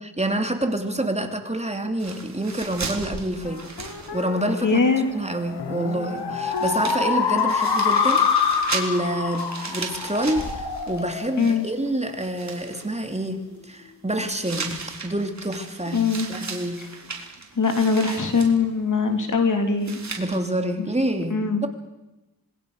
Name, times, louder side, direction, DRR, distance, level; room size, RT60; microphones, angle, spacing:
voice 1, 0.0-3.6 4.1-4.8 5.1-14.8 15.0-16.0 16.3-16.8 20.2-21.7, right 1 dB, 15° right, 5 dB, 2.9 m, -27 dB
sound 1, 2.0-4.6 4.8-4.9 6.2-6.3 6.5-11.9 12.2-12.9 14.4-18.5 19.8-20.4, right 4 dB, 45° right, 4.2 m, -36 dB
sound 2, 3.4-12.3, left 6 dB, 90° left, 2.6 m, -26 dB
voice 2, 4.6-5.1 11.4-11.7 15.9-16.3 17.6-20.0 21.3-21.7, left 4 dB, 50° left, 5 dB, 3.5 m, -21 dB
26.0 x 21.5 x 6.6 m, 0.99 s
cardioid pair, 70°, 38 cm